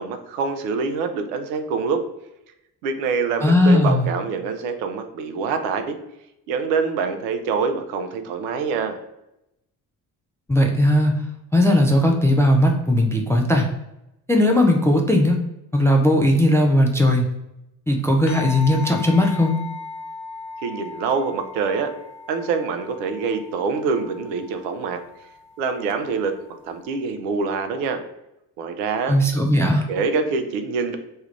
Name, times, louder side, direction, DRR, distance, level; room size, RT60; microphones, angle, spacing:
voice 1, 0.0-2.0 2.8-6.0 6.5-9.0 20.6-21.9 22.3-25.0 25.6-26.3 26.6-28.0 28.6-29.1 29.9-31.0, right 5 dB, 70° right, 7 dB, 0.6 m, -25 dB
voice 2, 3.4-4.1 10.5-11.2 11.5-13.7 14.3-15.4 15.7-17.3 17.9-19.6 29.1-29.8, left 1 dB, 5° left, 2 dB, 0.3 m, -18 dB
sound 1, 18.3-27.0, left 3 dB, 75° left, 0.8 m, -38 dB
3.2 x 2.3 x 3.1 m, 0.85 s
figure-of-eight pair, 45°, 50 cm